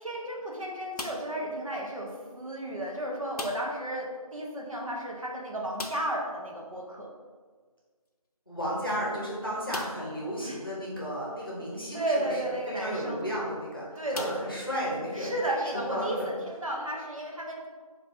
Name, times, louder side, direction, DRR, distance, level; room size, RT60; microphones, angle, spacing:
voice 1, 0.0-7.1 10.4-10.6 11.9-13.3 14.0-14.5 15.1-17.7, right 1 dB, 65° right, -2 dB, 0.7 m, -33 dB
sound 1, 0.9-1.5 3.3-3.9 4.1-4.2 4.6-4.7 5.7-6.3 8.1-8.2 8.8-8.9 9.7-10.2 10.9-11.0 13.0-13.2 14.1-15.0, left 2 dB, 85° left, 0.5 m, -40 dB
voice 2, 8.5-16.2, equal, 35° left, -7 dB, 0.8 m, -34 dB
4.1 x 2.4 x 2.6 m, 1.5 s
figure-of-eight pair, 180°, 19 cm